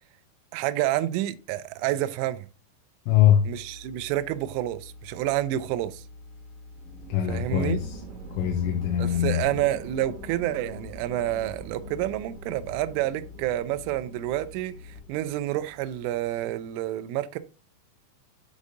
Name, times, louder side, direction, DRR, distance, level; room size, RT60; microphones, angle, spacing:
voice 1, 0.5-2.5 3.5-6.0 7.3-7.8 9.0-17.4, right 14 dB, 85° right, 3.0 m, -29 dB
voice 2, 3.1-3.5 7.1-8.0 8.3-9.4, left 10 dB, 85° left, 3.2 m, -22 dB
sound 1, 3.1-15.0, left 2 dB, 65° left, 2.9 m, -47 dB
sound 2, 6.7-16.7, right 1 dB, 70° right, 1.8 m, -45 dB
8.2 x 4.9 x 2.6 m
omnidirectional pair, 5.7 m